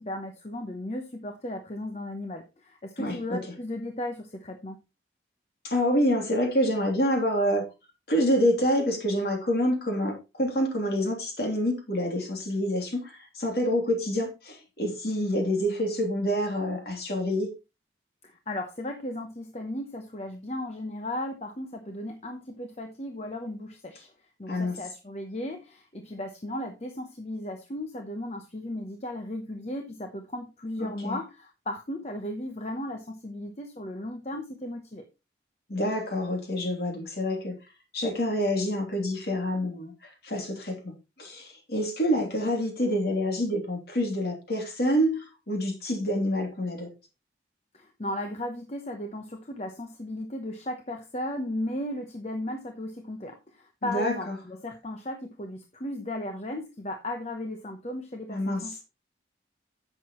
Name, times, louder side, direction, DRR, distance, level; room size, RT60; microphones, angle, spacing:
voice 1, 0.0-4.8 18.2-24.1 24.4-35.0 47.7-58.8, left 1 dB, 35° left, 5 dB, 0.9 m, -36 dB
voice 2, 3.0-3.4 5.6-7.6 8.1-17.5 24.5-24.8 30.8-31.2 35.7-37.5 37.9-40.9 41.2-46.9 53.8-54.3 58.3-58.8, equal, 55° left, 2 dB, 3.1 m, -27 dB
11.0 x 7.7 x 3.1 m, 0.27 s
head